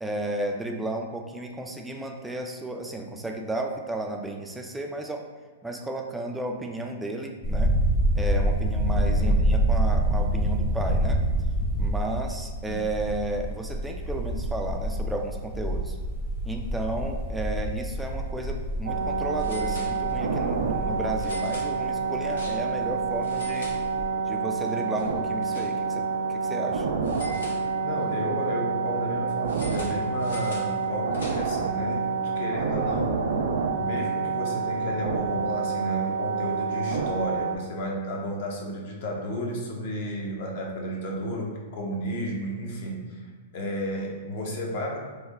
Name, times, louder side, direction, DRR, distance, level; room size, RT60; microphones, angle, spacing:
voice 1, 0.0-5.2 5.6-7.7 8.2-11.2 11.8-16.0 16.5-23.7 24.3-26.9, right 1 dB, 5° right, 2 dB, 0.3 m, -33 dB
sound 1, 7.4-23.2 23.5-24.0, right 1 dB, 25° left, 0.8 m, -27 dB
sound 2, 18.9-37.6, right 5 dB, 80° right, 0.3 m, -28 dB
sound 3, 19.3-20.4 21.1-22.9 23.2-24.3 24.7-26.1 27.0-28.1 29.4-31.7, left 1 dB, 90° left, 0.8 m, -44 dB
voice 2, 27.8-33.2 33.8-43.0 43.5-45.0, equal, 55° left, -1 dB, 0.7 m, -32 dB
3.2 x 2.1 x 3.5 m, 1.4 s
hypercardioid pair, 135°, 0 cm